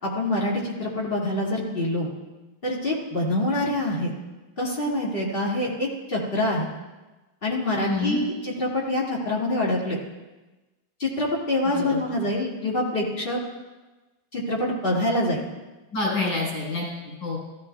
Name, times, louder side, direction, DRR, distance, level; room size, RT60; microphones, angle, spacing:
voice 1, 0.0-2.1 2.6-4.1 4.6-6.7 7.4-10.0 11.0-13.4 14.3-15.4, left 1 dB, 25° left, -4 dB, 2.4 m, -25 dB
voice 2, 7.8-8.2 11.7-11.8 15.9-17.4, left 3 dB, 80° left, -5 dB, 5.7 m, -27 dB
16.0 x 13.5 x 2.4 m, 1.1 s
omnidirectional pair, 2.2 m